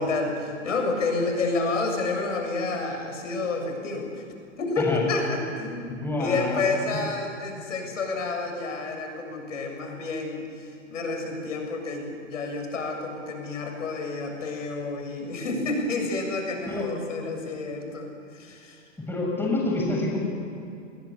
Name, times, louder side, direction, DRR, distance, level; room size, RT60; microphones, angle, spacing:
voice 1, 0.0-4.2 4.6-18.8, left 3 dB, 70° left, 3 dB, 7.2 m, -29 dB
voice 2, 5.9-6.6 16.7-17.0 19.1-20.2, left 2 dB, 5° left, -2 dB, 7.6 m, -27 dB
30.0 x 21.5 x 8.7 m, 2.5 s
hypercardioid pair, 120°, 39 cm